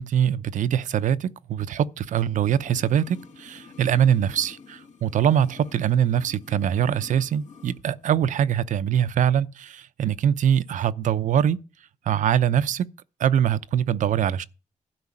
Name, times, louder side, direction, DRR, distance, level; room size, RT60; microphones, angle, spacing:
voice 1, 0.0-11.6 12.1-12.9 13.2-14.4, right 9 dB, 80° right, 0.7 m, -23 dB
sound 1, 2.3-7.8 8.1-8.2, left 5 dB, 70° left, 1.5 m, -48 dB
12.0 x 5.1 x 8.7 m
wide cardioid pair, 150°, 13 cm